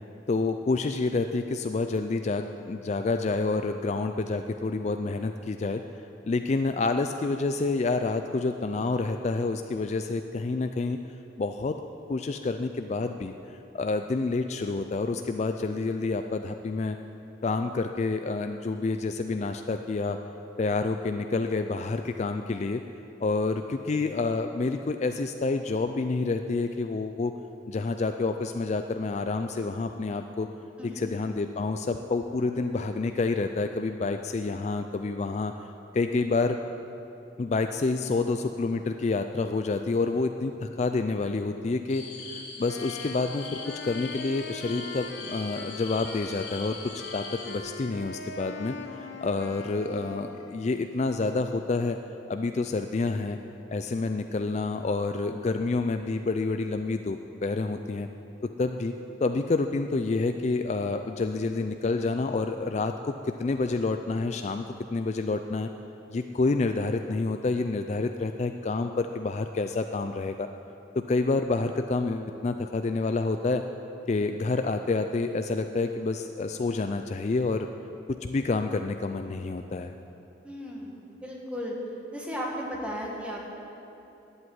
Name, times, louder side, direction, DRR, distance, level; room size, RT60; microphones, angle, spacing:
voice 1, 0.3-5.8 6.3-11.0 11.4-11.8 12.1-17.0 17.4-20.2 20.6-22.8 23.2-27.3 27.7-30.5 30.8-35.7 35.9-36.6 37.4-52.0 52.3-53.4 53.7-58.1 58.6-58.9 59.2-65.7 66.1-70.5 70.9-73.6 74.1-77.7 78.1-79.9, left 3 dB, 35° left, 7 dB, 0.3 m, -28 dB
voice 2, 30.8-31.1 80.4-81.7 82.1-83.4, equal, 5° right, -2 dB, 1.8 m, -35 dB
sound 1, 41.9-47.6, left 4 dB, 90° left, 2.0 m, -41 dB
Wind instrument woodwind instrument, 42.7-50.8, left 3 dB, 65° left, 1.0 m, -41 dB
11.5 x 8.0 x 9.3 m, 3.0 s
head